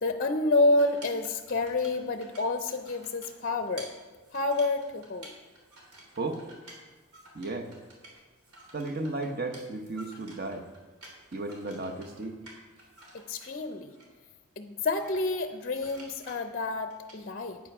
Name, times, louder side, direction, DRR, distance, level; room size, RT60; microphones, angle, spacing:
voice 1, 0.0-3.9 4.3-5.3 13.1-13.9 14.6-17.6, left 2 dB, 40° left, 7 dB, 0.5 m, -28 dB
sound 1, 0.7-14.1 15.0-17.2, right 1 dB, 80° right, 3.1 m, -52 dB
voice 2, 7.3-7.7 8.7-10.7 11.3-12.4, right 2 dB, 40° right, 6 dB, 1.0 m, -34 dB
8.9 x 8.8 x 6.0 m, 1.2 s
head